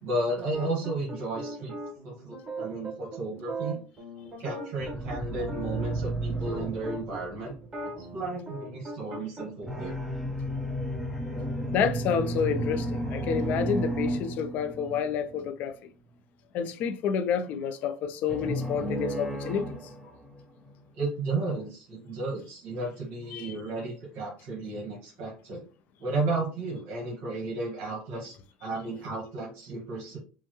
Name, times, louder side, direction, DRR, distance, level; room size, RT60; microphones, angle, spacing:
voice 1, 0.0-1.8 2.0-3.8 4.4-7.5 7.8-9.9 20.9-25.6 26.0-28.3 28.6-30.2, right 2 dB, 65° right, 1.5 m, -33 dB
sound 1, 0.5-7.2 7.6-9.5, right 2 dB, 30° right, 1.9 m, -39 dB
sound 2, 4.8-7.9 9.6-15.3 18.3-20.7, right 1 dB, ahead, 0.8 m, -33 dB
voice 2, 11.7-15.7 16.5-19.7 23.3-23.5, left 7 dB, 55° left, 0.5 m, -29 dB
5.6 x 2.1 x 3.0 m
cardioid pair, 125°, 3 cm